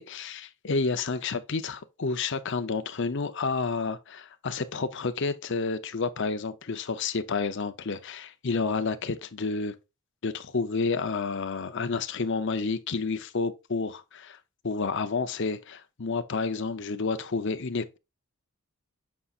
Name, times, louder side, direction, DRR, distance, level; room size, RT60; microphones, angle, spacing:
voice 1, 0.0-9.8 10.2-14.4 14.6-18.0, left 4 dB, 55° left, 0.7 m, -30 dB
8.4 x 5.5 x 2.4 m
head